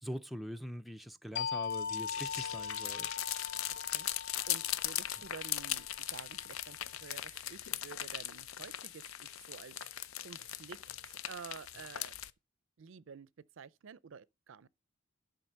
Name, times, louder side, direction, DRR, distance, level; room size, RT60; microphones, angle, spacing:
voice 1, 0.0-3.1, equal, ahead, 0.5 m, -43 dB
sound 1, 1.4-6.7, left 6 dB, 55° left, 0.7 m, -41 dB
sound 2, 1.6-12.3, left 12 dB, 85° left, 0.6 m, -39 dB
voice 2, 4.5-10.8 11.0-12.1 12.8-13.3 13.6-14.7, right 6 dB, 65° right, 0.5 m, -51 dB
11.5 x 3.9 x 6.5 m
head